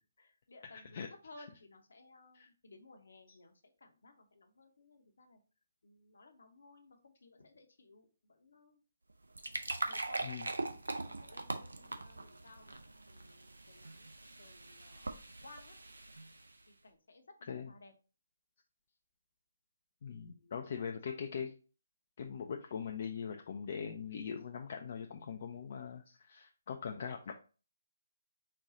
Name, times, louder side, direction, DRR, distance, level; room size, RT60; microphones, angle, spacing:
voice 1, 0.0-3.5 3.8-5.4 5.8-8.8 9.7-12.8 13.1-15.8 16.8-17.9 20.1-21.4 26.9-27.1, left 2 dB, 65° left, 5 dB, 0.8 m, -59 dB
sound 1, 9.1-16.6, right 2 dB, 75° right, 0.5 m, -42 dB
voice 2, 20.0-21.5 22.2-27.3, left 6 dB, 45° left, 4 dB, 0.4 m, -41 dB
4.3 x 2.3 x 3.8 m, 0.36 s
figure-of-eight pair, 140°, 0 cm